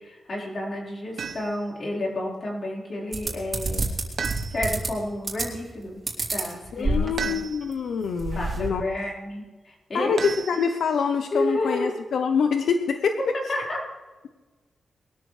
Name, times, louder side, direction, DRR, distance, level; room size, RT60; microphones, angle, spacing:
voice 1, 0.0-3.9 4.3-6.0 6.3-7.4 8.3-10.1 11.3-11.9 13.5-13.8, left 1 dB, 45° left, -3 dB, 4.8 m, -31 dB
sound 1, 1.2-1.7 4.2-4.9 7.2-7.9 10.2-11.1, right 6 dB, 60° right, 1.1 m, -34 dB
sound 2, 3.1-4.9 5.2-5.7 6.1-7.3 7.7-7.8 8.0-8.7, right 3 dB, 35° right, 3.9 m, -28 dB
voice 2, 6.8-8.8 9.9-13.2, left 6 dB, 80° left, 6 dB, 0.9 m, -25 dB
22.0 x 13.5 x 3.4 m, 1.3 s
wide cardioid pair, 135°, 0 cm